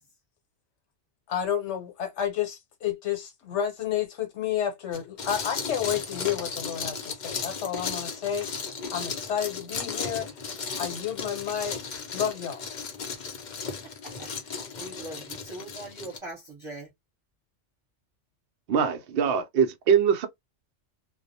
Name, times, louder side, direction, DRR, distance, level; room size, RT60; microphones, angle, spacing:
voice 1, 1.3-10.5 10.8-11.8 12.1-12.6, left 9 dB, 70° left, 1.1 m, -31 dB
sound 1, 4.9-16.2, left 5 dB, 50° left, 0.6 m, -35 dB
voice 2, 14.2-16.9, right 2 dB, 25° right, 1.0 m, -42 dB
voice 3, 18.7-20.3, right 7 dB, 60° right, 0.6 m, -23 dB
2.3 x 2.0 x 2.6 m
omnidirectional pair, 1.3 m